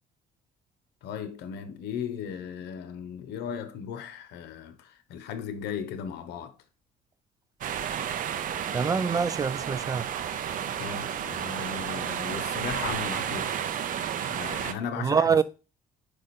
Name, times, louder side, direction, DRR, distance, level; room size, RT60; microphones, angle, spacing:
voice 1, 1.0-6.5 10.8-13.6 14.3-15.4, left 7 dB, 80° left, 1.0 m, -36 dB
sound 1, 7.6-14.7, right 9 dB, 55° right, 0.7 m, -32 dB
voice 2, 8.7-10.1 15.0-15.4, right 6 dB, 20° right, 0.4 m, -25 dB
5.1 x 5.0 x 4.2 m
cardioid pair, 110°, 17 cm